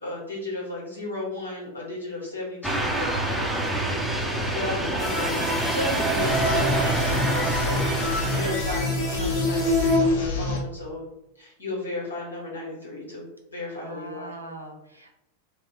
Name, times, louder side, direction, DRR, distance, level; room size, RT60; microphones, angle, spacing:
voice 1, 0.0-7.9 8.3-11.0 11.4-14.4, left 2 dB, 75° left, -4 dB, 1.3 m, -34 dB
sound 1, 2.6-8.5, right 1 dB, 5° left, 0.5 m, -27 dB
sound 2, 5.0-10.0, left 1 dB, 20° left, 1.0 m, -28 dB
sound 3, 6.2-10.6, left 1 dB, 55° left, 0.6 m, -29 dB
voice 2, 13.7-15.2, right 1 dB, 85° right, 0 dB, 0.6 m, -42 dB
2.6 x 2.1 x 3.8 m, 0.87 s
figure-of-eight pair, 90°, 0 cm